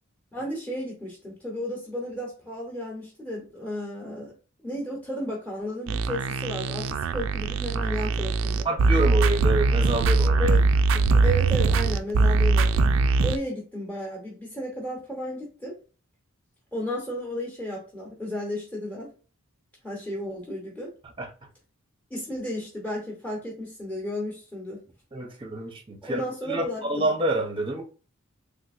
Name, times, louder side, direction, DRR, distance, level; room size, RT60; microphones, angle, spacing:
voice 1, 0.3-4.3 4.6-8.7 10.4-10.6 11.2-12.9 13.2-15.8 16.7-19.1 19.8-20.9 22.1-24.8 26.0-27.1, equal, 5° left, 0.9 m, -33 dB
sound 1, 5.9-13.4, right 3 dB, 70° right, 0.3 m, -22 dB
voice 2, 8.6-10.4 10.9-11.2 21.2-21.3 25.1-27.8, right 2 dB, 25° right, 0.6 m, -28 dB
3.4 x 2.8 x 2.5 m
head